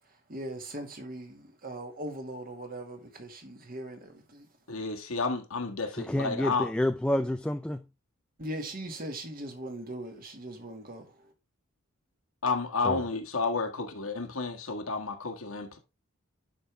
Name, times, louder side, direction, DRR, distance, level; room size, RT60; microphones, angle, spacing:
voice 1, 0.3-4.5 8.4-11.3, right 1 dB, 45° right, 1.9 m, -40 dB
voice 2, 4.7-6.7 12.4-15.8, left 4 dB, 80° left, 1.7 m, -31 dB
voice 3, 5.9-7.8 12.8-13.0, left 1 dB, 5° left, 0.3 m, -29 dB
11.0 x 5.4 x 3.4 m
head